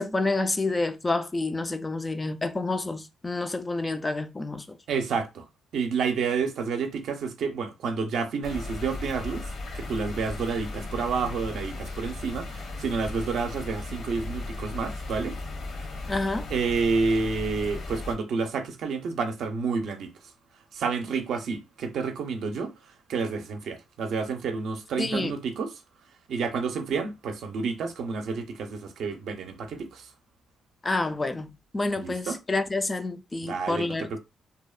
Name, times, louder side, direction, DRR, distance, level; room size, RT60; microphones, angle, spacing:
voice 1, 0.0-4.8 16.1-16.5 25.0-25.3 30.8-34.2, left 2 dB, 20° left, 0.3 m, -28 dB
voice 2, 4.9-5.5 5.7-15.4 16.5-20.1 20.7-22.7 23.1-25.7 26.3-30.1 32.0-32.4 33.4-34.2, right 5 dB, 70° right, 0.5 m, -29 dB
sound 1, 8.4-18.2, left 2 dB, 60° left, 0.8 m, -36 dB
2.7 x 2.0 x 2.3 m
cardioid pair, 90°, 0 cm